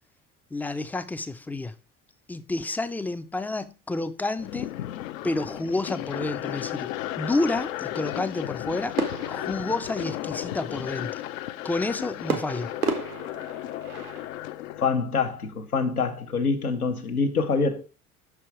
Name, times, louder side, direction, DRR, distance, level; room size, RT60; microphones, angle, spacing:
voice 1, 0.5-1.7 2.3-4.7 5.2-9.0 9.3-11.2 11.6-12.7, left 2 dB, 5° left, 0.3 m, -30 dB
sound 1, 4.4-14.9, left 14 dB, 65° left, 0.6 m, -34 dB
sound 2, 9.0-10.5 12.3-14.4, right 5 dB, 85° right, 1.0 m, -32 dB
voice 2, 14.8-17.9, left 5 dB, 90° left, 0.9 m, -25 dB
6.0 x 4.7 x 4.6 m
figure-of-eight pair, 60°, 43 cm